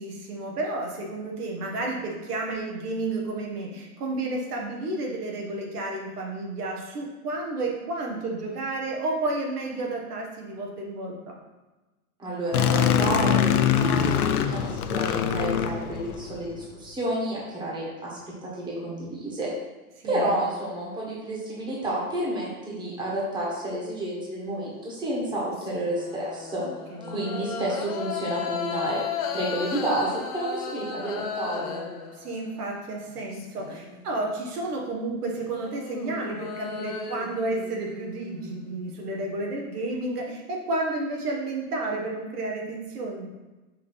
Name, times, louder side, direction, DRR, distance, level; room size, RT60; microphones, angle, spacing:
voice 1, 0.0-11.4 20.0-20.3 26.9-27.2 32.1-43.3, right 2 dB, 90° right, -1 dB, 1.8 m, -31 dB
voice 2, 12.2-19.5 20.0-26.6 27.1-29.0 29.3-31.8, right 1 dB, 10° right, -5 dB, 1.4 m, -30 dB
sound 1, 12.5-16.5, left 8 dB, 80° left, 0.7 m, -23 dB
sound 2, 25.2-32.7 33.1-34.2 35.2-39.2, left 6 dB, 30° left, 0.4 m, -36 dB
5.6 x 3.5 x 5.5 m, 1.2 s
supercardioid pair, 160°, 44 cm